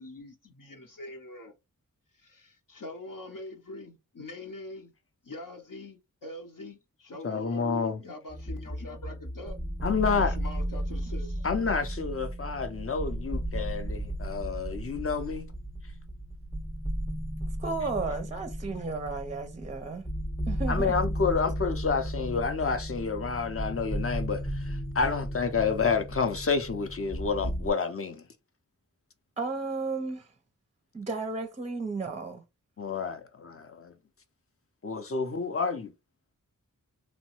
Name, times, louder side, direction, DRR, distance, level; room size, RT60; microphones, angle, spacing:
voice 1, 0.0-1.5 2.1-4.9 5.2-9.6 10.1-11.5, left 2 dB, 70° left, 0.8 m, -43 dB
voice 2, 7.2-8.0 9.8-10.3 11.4-15.5 20.7-28.2 32.8-33.9 34.8-35.9, left 5 dB, 40° left, 0.6 m, -29 dB
sound 1, 8.3-27.7, equal, 10° left, 0.8 m, -34 dB
voice 3, 17.6-20.1 20.5-21.0 29.4-30.3 30.9-32.4, right 3 dB, 20° right, 0.5 m, -33 dB
3.0 x 2.1 x 2.9 m
wide cardioid pair, 55°, 34 cm